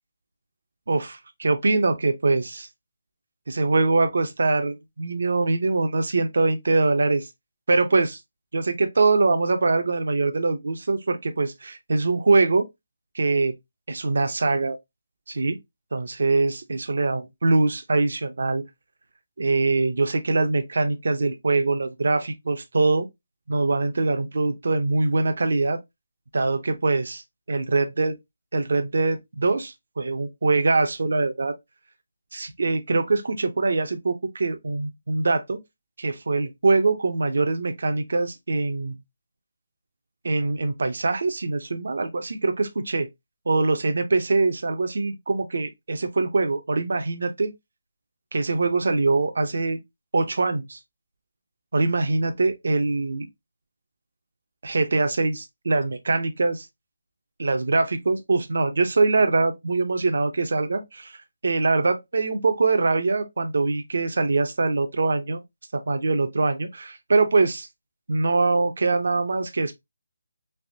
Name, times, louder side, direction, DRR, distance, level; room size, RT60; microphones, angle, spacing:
voice 1, 0.9-2.7 3.5-7.3 7.7-8.2 8.5-12.7 13.1-13.5 13.9-14.8 15.3-15.6 15.9-18.6 19.4-23.1 23.5-25.8 26.3-28.1 28.5-31.5 32.3-35.6 36.0-39.0 40.2-43.1 43.5-47.5 48.3-49.8 50.1-50.8 51.7-53.3 54.6-56.7 57.4-61.2 61.4-65.4 65.7-67.7 68.1-69.7, right 3 dB, 65° right, 0.5 m, -23 dB
3.3 x 2.9 x 2.6 m
hypercardioid pair, 170°, 0 cm